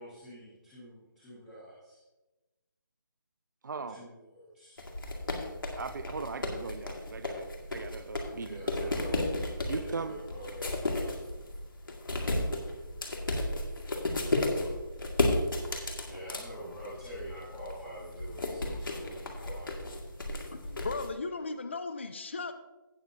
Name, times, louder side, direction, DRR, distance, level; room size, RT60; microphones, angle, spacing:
voice 1, 0.0-2.0 3.7-4.8 8.3-9.2 9.5-11.1 16.0-19.8, equal, 5° left, -12 dB, 1.4 m, -46 dB
voice 2, 3.6-4.1 5.8-8.9 9.7-10.2, right 4 dB, 60° right, 9 dB, 0.5 m, -39 dB
sound 1, 4.8-21.1, left 2 dB, 70° left, 2.1 m, -34 dB
voice 3, 20.5-22.5, left 3 dB, 30° left, 11 dB, 0.5 m, -36 dB
17.0 x 7.0 x 2.7 m, 1.1 s
hypercardioid pair, 175°, 12 cm